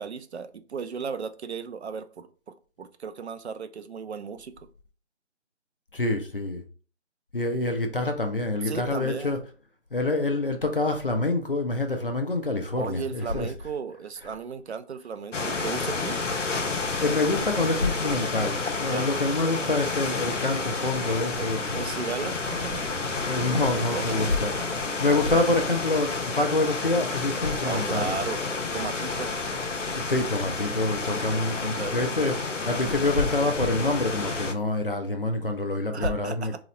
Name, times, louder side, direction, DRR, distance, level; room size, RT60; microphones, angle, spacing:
voice 1, 0.0-2.3 2.8-4.7 8.6-9.4 12.8-16.2 18.9-19.2 21.4-21.5 21.7-22.9 23.9-24.3 27.6-28.4 28.7-29.4 31.6-32.0 35.9-36.6, right 6 dB, 65° right, 0.5 m, -35 dB
voice 2, 5.9-6.6 7.3-9.4 9.9-13.5 17.0-21.9 23.3-24.5 25.0-28.1 29.9-36.6, left 2 dB, 50° left, 0.5 m, -26 dB
sound 1, 15.3-34.5, left 3 dB, 80° left, 0.7 m, -30 dB
2.9 x 2.1 x 3.8 m
figure-of-eight pair, 170°, 36 cm